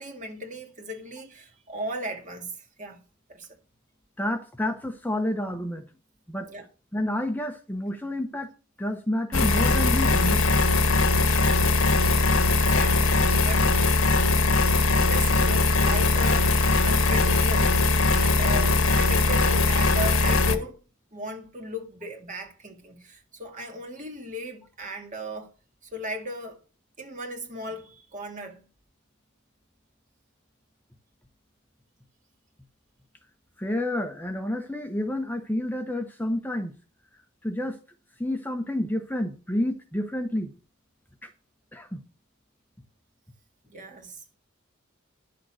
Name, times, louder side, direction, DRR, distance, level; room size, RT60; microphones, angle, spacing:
voice 1, 0.0-3.0 3.3-3.5 6.5-6.6 12.6-13.7 15.1-17.8 18.1-20.8 21.1-25.5 25.8-26.6 27.0-28.6 43.7-44.2, equal, 40° right, 2.4 m, -36 dB
voice 2, 4.2-5.8 6.3-6.5 6.9-8.5 8.8-10.5 33.6-36.7 37.4-37.8 38.2-40.5 41.2-41.3 41.7-42.0, left 1 dB, 10° left, 0.9 m, -29 dB
sound 1, 9.3-20.6, left 3 dB, 80° left, 1.4 m, -21 dB
11.0 x 6.7 x 6.3 m
head